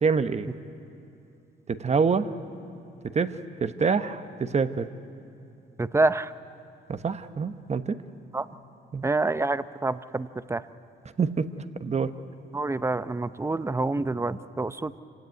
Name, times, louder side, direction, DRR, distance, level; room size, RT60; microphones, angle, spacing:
voice 1, 0.0-0.5 1.7-2.3 3.1-3.3 3.6-4.9 6.9-8.0 8.9-9.1 11.2-11.5 11.8-12.1, right 5 dB, 35° right, 10 dB, 1.0 m, -26 dB
voice 2, 5.8-6.3 8.3-8.4 9.0-10.6 12.5-14.9, right 2 dB, 15° right, 14 dB, 0.6 m, -27 dB
25.5 x 17.0 x 9.6 m, 2.7 s
cardioid pair, 90°, 20 cm